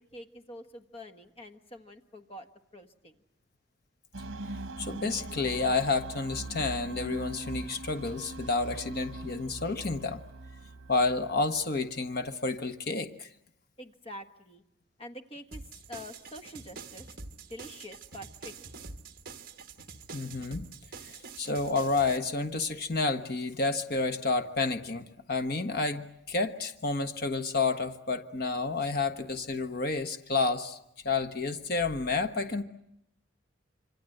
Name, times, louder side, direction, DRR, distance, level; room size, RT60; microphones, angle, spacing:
voice 1, 0.1-2.5 2.7-3.2 13.8-14.6 15.0-15.6 15.9-17.1 17.5-18.7, left 1 dB, 30° left, 7 dB, 1.5 m, -46 dB
sound 1, 4.1-12.3, right 2 dB, 75° right, 1.2 m, -42 dB
voice 2, 4.8-10.2 10.9-13.3 20.1-20.6 21.0-30.8 31.0-32.6, left 3 dB, 50° left, 7 dB, 1.3 m, -30 dB
sound 2, 15.5-22.2, right 4 dB, 45° right, 1.6 m, -46 dB
26.5 x 25.5 x 7.9 m, 0.81 s
head